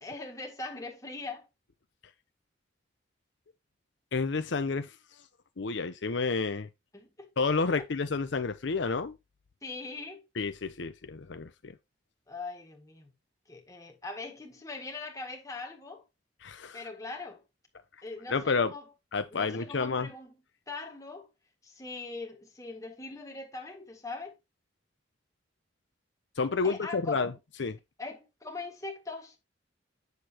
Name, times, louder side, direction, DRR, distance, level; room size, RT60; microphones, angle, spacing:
voice 1, 0.0-1.5 6.9-7.3 9.6-10.2 12.3-13.1 13.5-16.0 16.7-17.4 18.0-18.9 19.3-20.3 20.7-21.3 21.6-24.3 26.6-27.2 28.0-29.4, left 3 dB, 20° left, 1.8 m, -41 dB
voice 2, 4.1-4.9 5.6-6.7 7.4-9.2 10.3-11.7 16.4-16.8 18.3-18.7 19.1-20.1 26.4-27.3 27.6-27.8, left 4 dB, 70° left, 0.6 m, -30 dB
8.1 x 6.7 x 2.9 m
head